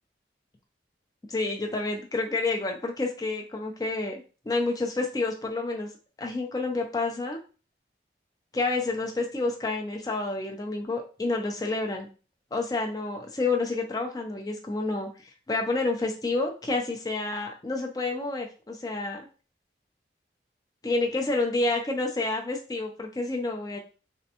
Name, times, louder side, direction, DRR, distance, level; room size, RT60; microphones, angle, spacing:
voice 1, 1.3-5.9 6.2-7.4 8.5-12.1 12.5-15.1 15.5-19.2 20.8-23.8, left 3 dB, 20° left, 2 dB, 0.4 m, -29 dB
2.5 x 2.1 x 2.7 m, 0.36 s
head